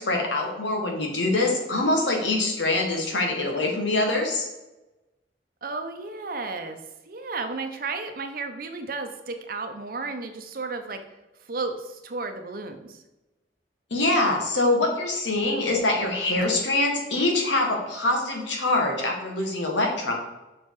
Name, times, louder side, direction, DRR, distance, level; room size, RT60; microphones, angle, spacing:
voice 1, 0.0-4.5 13.9-20.1, left 2 dB, 90° left, 1 dB, 1.6 m, -24 dB
voice 2, 5.6-6.8 7.1-11.0 11.5-13.0, right 3 dB, 50° right, 6 dB, 0.7 m, -33 dB
6.3 x 4.5 x 4.7 m, 1.0 s
head